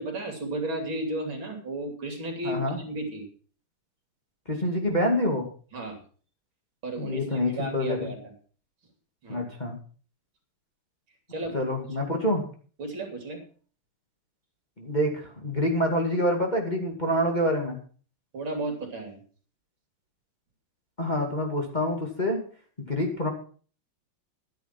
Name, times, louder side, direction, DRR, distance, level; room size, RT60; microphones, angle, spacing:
voice 1, 0.0-3.3 5.7-6.0 6.8-8.3 9.2-9.4 11.3-11.6 11.8-12.0 12.8-13.4 18.3-19.2, right 2 dB, 65° right, 4 dB, 3.7 m, -34 dB
voice 2, 2.4-2.8 4.5-5.5 7.0-8.1 9.3-9.8 11.5-12.4 14.8-17.8 21.0-22.4 22.8-23.3, left 1 dB, 20° left, 0 dB, 2.3 m, -26 dB
11.5 x 10.5 x 5.9 m, 0.41 s
omnidirectional pair, 2.4 m